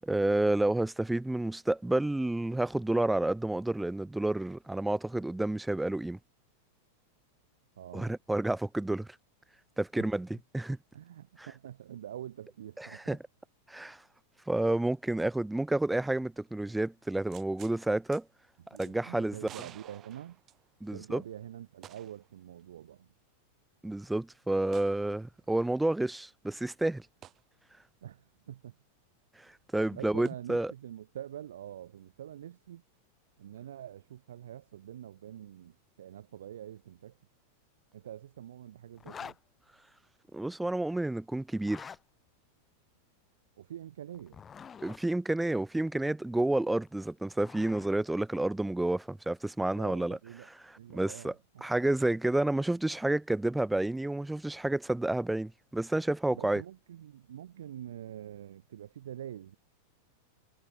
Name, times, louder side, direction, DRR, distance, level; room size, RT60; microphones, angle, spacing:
voice 1, 0.0-6.2 7.9-9.1 9.8-10.3 10.5-10.8 12.8-13.2 13.7-14.0 14.5-18.2 18.8-19.4 20.8-21.2 23.8-27.1 29.4-30.7 40.3-41.9 44.8-50.2 50.9-51.3 51.6-56.6, right 2 dB, 5° right, 1.0 m, -30 dB
voice 2, 7.8-8.1 10.0-10.1 10.9-13.2 18.7-20.4 20.9-23.1 28.0-28.8 29.9-32.8 33.4-37.2 37.9-39.4 43.6-44.4 49.8-50.5 50.8-51.4 56.3-59.6, right 11 dB, 60° right, 4.6 m, -45 dB
sound 1, 17.3-17.8 18.1-18.2 18.8-18.9 19.4-21.0 21.8-22.3 22.6-22.7 24.7-25.0 27.2-27.4 30.2-30.3, right 11 dB, 30° right, 3.1 m, -51 dB
Zipper (clothing), 39.0-39.4 41.5-42.0 44.1-45.0 46.9-48.0, left 7 dB, 20° left, 4.4 m, -46 dB
figure-of-eight pair, 90°, 0 cm